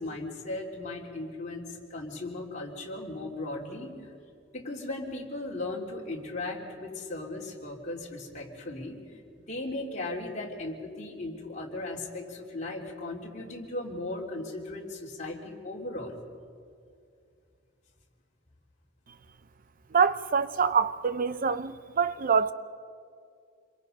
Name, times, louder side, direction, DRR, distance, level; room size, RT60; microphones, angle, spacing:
voice 1, 0.0-4.1 4.5-9.0 9.5-16.2, left 2 dB, 40° left, 3.4 m, -37 dB
voice 2, 19.9-22.5, right 6 dB, 45° right, 0.7 m, -25 dB
27.0 x 22.5 x 5.5 m
head